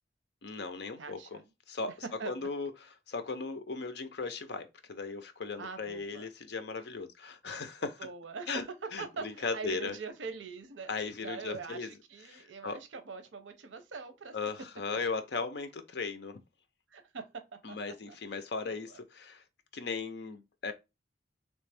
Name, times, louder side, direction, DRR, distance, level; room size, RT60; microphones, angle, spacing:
voice 1, 0.4-1.4 1.7-1.9 2.3-2.7 3.1-8.0 8.5-8.6 8.9-10.0 10.9-11.9 12.3-12.8 14.3-16.4 17.6-19.4 19.7-20.7, left 4 dB, 60° left, 0.6 m, -37 dB
voice 2, 1.0-1.4 2.2-2.5 5.6-6.3 8.0-14.4 16.9-17.2 17.7-17.8 18.1-18.4 18.7-19.0, right 5 dB, 85° right, 0.7 m, -43 dB
3.2 x 3.1 x 3.4 m
head